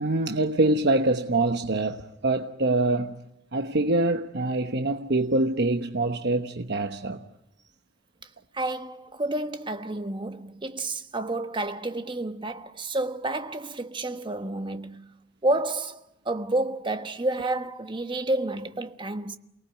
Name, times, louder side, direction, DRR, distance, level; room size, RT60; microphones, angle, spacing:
voice 1, 0.0-3.2 3.5-7.2, right 2 dB, 60° right, 1.1 m, -25 dB
voice 2, 8.5-15.1 15.4-19.4, right 2 dB, 25° right, 1.2 m, -30 dB
29.0 x 19.5 x 9.2 m
head